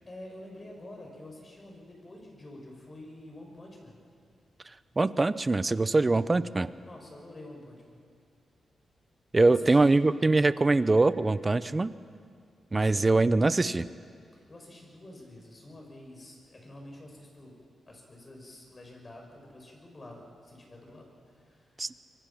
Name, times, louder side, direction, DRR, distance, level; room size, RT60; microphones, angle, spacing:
voice 1, 0.1-4.0 6.8-8.0 9.4-9.9 14.5-17.6 17.9-21.6, left 1 dB, 35° left, 0 dB, 6.4 m, -48 dB
voice 2, 5.0-6.7 9.3-11.9 12.7-13.9 21.8-21.9, right 3 dB, 25° right, 15 dB, 0.7 m, -23 dB
25.0 x 23.5 x 5.8 m, 2.2 s
cardioid pair, 80°, 0 cm